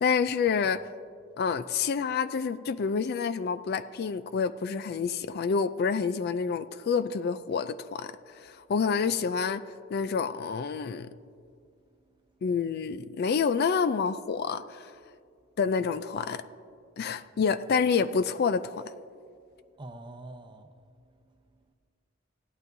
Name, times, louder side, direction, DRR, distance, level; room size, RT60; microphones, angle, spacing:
voice 1, 0.0-0.8 1.4-9.6 9.9-11.1 12.4-14.9 15.6-16.4 17.0-18.8, left 5 dB, 50° left, 13 dB, 0.4 m, -28 dB
voice 2, 11.4-12.6 15.6-15.7 19.3-19.4 19.7-21.7, right 2 dB, 25° right, 5 dB, 0.7 m, -50 dB
16.5 x 12.0 x 2.7 m, 2.3 s
head